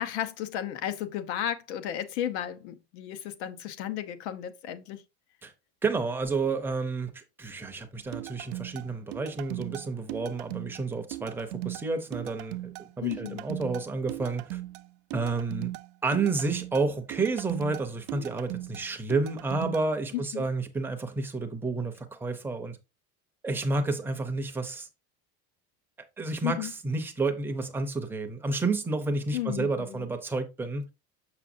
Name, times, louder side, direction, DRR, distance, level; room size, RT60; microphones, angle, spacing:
voice 1, 0.0-5.0 13.0-13.4 20.1-20.5 26.4-26.7 29.3-30.1, left 11 dB, 85° left, 1.0 m, -33 dB
voice 2, 5.8-14.6 15.1-15.7 16.0-22.8 23.4-24.9 26.2-30.8, right 3 dB, 5° right, 0.6 m, -30 dB
sound 1, 8.1-19.8, right 17 dB, 90° right, 0.5 m, -38 dB
6.5 x 6.1 x 2.6 m
cardioid pair, 170°, 32 cm